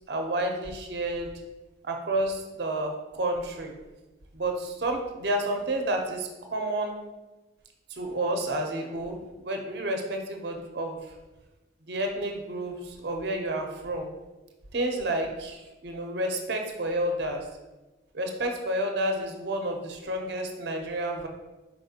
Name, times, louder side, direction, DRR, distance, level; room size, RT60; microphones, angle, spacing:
voice 1, 0.1-1.3 1.8-3.7 4.3-7.0 7.9-9.2 9.4-11.0 11.9-14.1 14.7-17.4 18.1-21.3, right 1 dB, 60° right, 3 dB, 0.6 m, -30 dB
4.4 x 4.2 x 2.8 m, 1.1 s
head